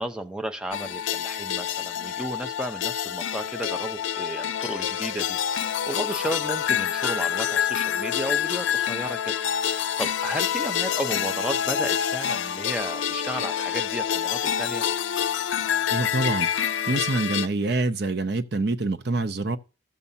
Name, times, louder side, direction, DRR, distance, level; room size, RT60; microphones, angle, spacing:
voice 1, 0.0-9.3 9.6-14.9, right 1 dB, 5° right, 0.5 m, -33 dB
sound 1, 0.7-17.5, left 9 dB, 75° left, 0.4 m, -27 dB
voice 2, 15.9-19.6, right 2 dB, 55° right, 0.7 m, -26 dB
14.5 x 7.0 x 2.7 m
head